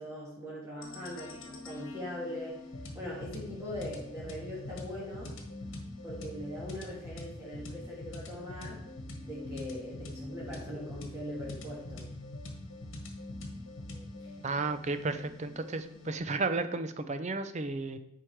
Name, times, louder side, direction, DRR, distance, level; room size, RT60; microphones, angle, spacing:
voice 1, 0.0-2.7 2.9-5.4 6.0-8.9 9.2-12.1 14.2-14.3, left 1 dB, 10° right, -7 dB, 1.6 m, -41 dB
sound 1, 0.8-16.2, left 2 dB, 60° left, 1.4 m, -44 dB
voice 2, 14.4-18.0, right 3 dB, 30° right, 10 dB, 0.5 m, -33 dB
9.9 x 4.7 x 4.6 m, 0.82 s
head